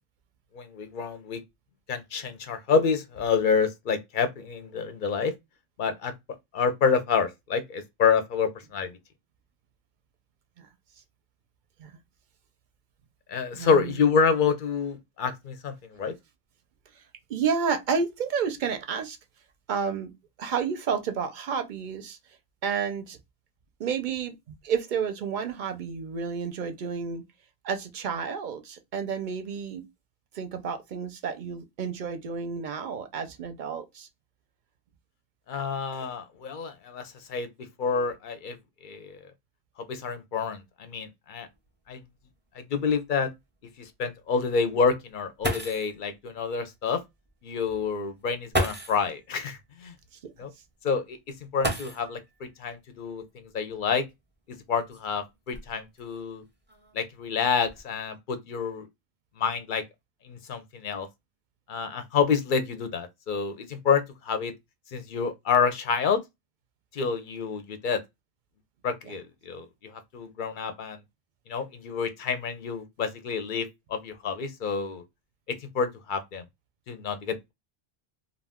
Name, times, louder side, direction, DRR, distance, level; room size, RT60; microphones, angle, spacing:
voice 1, 0.5-1.4 1.9-5.3 5.8-6.1 6.5-8.9 13.3-16.1 35.5-37.5 37.8-38.6 38.8-39.2 39.8-41.5 41.9-42.0 42.6-43.3 43.8-47.0 47.4-49.9 50.4-50.5 50.8-51.2 51.5-54.0 54.7-56.4 56.9-58.9 59.4-59.8 60.2-61.1 61.7-64.5 64.9-66.2 66.9-68.0 68.8-71.0 71.5-75.0 75.7-76.4 76.9-77.5, left 5 dB, 60° left, 0.7 m, -28 dB
voice 2, 13.5-13.9 17.0-17.1 17.3-19.2 19.7-20.1 20.4-22.2 22.6-23.2 23.8-24.4 24.6-27.2 27.6-29.8 30.3-34.1 50.2-50.3 69.0-69.1, right 6 dB, 60° right, 0.6 m, -30 dB
sound 1, 41.5-41.6 42.0-42.1 42.7-42.8 45.1-45.2 45.4-46.0 47.3-47.4 48.5-49.1 51.6-52.3 53.7-53.8 54.5-56.0 56.7-57.0 57.4-57.8, right 1 dB, 15° right, 0.6 m, -32 dB
2.4 x 2.2 x 3.4 m
omnidirectional pair, 1.0 m